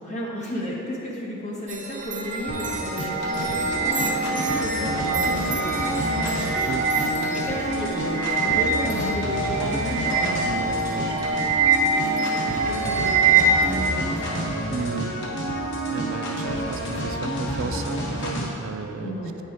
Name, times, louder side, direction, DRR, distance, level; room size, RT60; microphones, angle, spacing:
voice 1, 0.0-12.4 12.7-14.4 19.0-19.4, equal, 35° left, -4 dB, 1.5 m, -34 dB
sound 1, 1.7-13.8, right 4 dB, 35° right, 0.8 m, -24 dB
sound 2, 2.5-18.5, right 1 dB, 60° left, 1.4 m, -29 dB
voice 2, 14.7-15.2 15.9-19.1, right 5 dB, 70° right, 8 dB, 0.4 m, -33 dB
8.7 x 5.5 x 4.8 m, 2.8 s
head